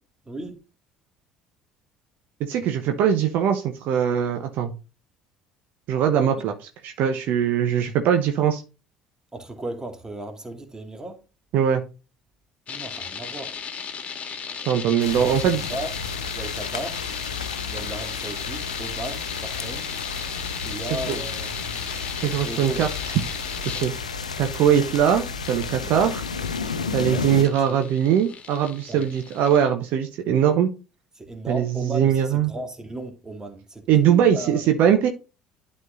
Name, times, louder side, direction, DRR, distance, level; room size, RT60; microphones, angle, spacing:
voice 1, 0.3-0.6 6.4-6.5 9.3-11.2 12.7-13.6 15.1-15.9 16.3-17.0 17.7-19.9 20.6-21.8 22.4-22.9 25.8-26.1 27.0-27.9 28.9-29.1 31.2-34.7, right 1 dB, 15° right, 2.3 m, -36 dB
voice 2, 2.4-4.7 5.9-6.5 6.8-8.6 11.5-11.8 14.7-15.6 21.1-21.2 22.2-22.9 23.7-23.9 24.4-26.1 26.9-30.7 31.5-32.5 33.9-35.1, right 9 dB, 55° right, 1.0 m, -21 dB
sound 1, 12.7-29.6, left 6 dB, 40° left, 1.8 m, -36 dB
sound 2, 15.0-27.4, left 5 dB, 85° left, 0.6 m, -32 dB
12.0 x 4.3 x 2.7 m
figure-of-eight pair, 55°, 4 cm